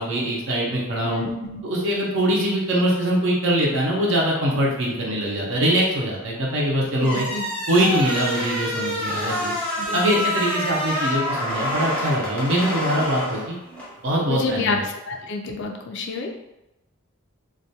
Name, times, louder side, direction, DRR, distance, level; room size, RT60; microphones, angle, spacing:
voice 1, 0.0-1.2 1.6-7.3 7.7-9.5 9.9-13.5 14.0-14.9, right 1 dB, 60° right, -3 dB, 0.6 m, -23 dB
voice 2, 1.0-1.6 7.0-7.4 9.8-10.3 14.3-14.8 15.1-16.4, left 4 dB, 55° left, 2 dB, 0.3 m, -29 dB
sound 1, 7.0-13.9, left 1 dB, 5° left, 0.6 m, -27 dB
2.3 x 2.2 x 2.7 m, 0.93 s
head